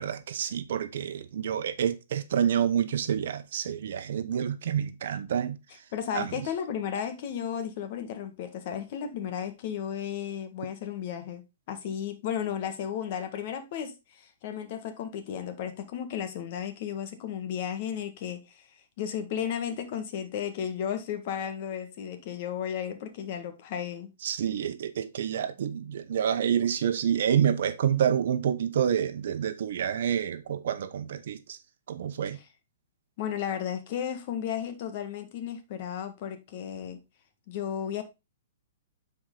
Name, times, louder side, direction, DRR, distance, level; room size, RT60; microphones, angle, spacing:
voice 1, 0.0-5.6 6.1-6.4 24.2-31.6 31.9-32.4, right 9 dB, 60° right, 0.9 m, -28 dB
voice 2, 5.9-11.4 11.7-18.7 19.0-24.1 33.2-37.0 37.5-38.0, left 9 dB, 45° left, 1.6 m, -34 dB
9.5 x 4.7 x 3.8 m
hypercardioid pair, 155°, 0 cm